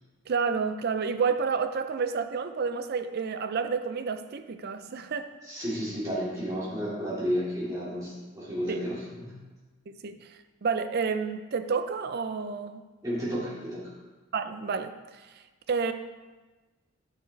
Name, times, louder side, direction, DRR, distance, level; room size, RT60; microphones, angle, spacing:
voice 1, 0.3-5.3 8.7-8.8 9.9-12.8 14.3-15.3 15.7-15.9, right 5 dB, 45° right, 10 dB, 0.4 m, -30 dB
voice 2, 5.4-9.3 13.0-13.9, equal, 15° right, -7 dB, 2.2 m, -32 dB
8.8 x 6.8 x 3.3 m, 1.2 s
head